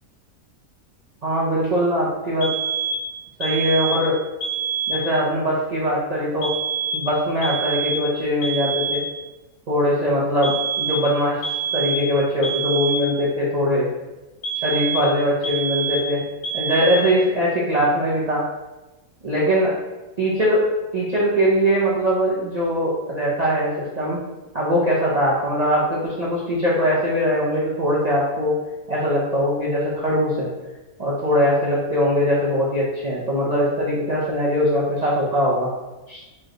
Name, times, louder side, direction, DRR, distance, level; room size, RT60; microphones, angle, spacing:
voice 1, 1.2-2.5 3.4-4.2 4.9-6.5 6.9-9.0 9.7-11.4 11.7-13.9 14.6-16.2 16.5-18.4 19.2-19.7 20.2-20.6 20.9-24.2 24.5-28.6 28.9-30.5 31.0-35.7 36.1-36.2, equal, 40° right, -8 dB, 0.6 m, -21 dB
sound 1, 2.4-3.1 3.4-4.1 4.4-5.1 6.4-7.1 7.4-8.1 8.4-9.1 10.4-11.1 11.4-12.1 12.4-13.1 14.4-15.1 15.4-16.1 16.4-17.1, right 5 dB, 45° left, 1.1 m, -26 dB
3.3 x 3.0 x 3.7 m, 1.1 s
omnidirectional pair, 1.5 m